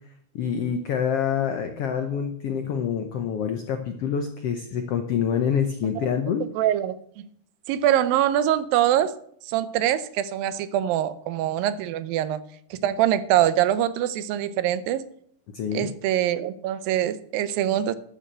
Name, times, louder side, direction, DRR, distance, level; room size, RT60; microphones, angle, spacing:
voice 1, 0.3-6.5 15.5-15.9, left 7 dB, 85° left, 7 dB, 1.3 m, -26 dB
voice 2, 6.6-6.9 7.7-9.1 9.4-12.4 12.7-15.0 15.7-17.9, right 11 dB, 85° right, 14 dB, 2.5 m, -23 dB
12.0 x 6.9 x 7.5 m, 0.65 s
omnidirectional pair, 4.0 m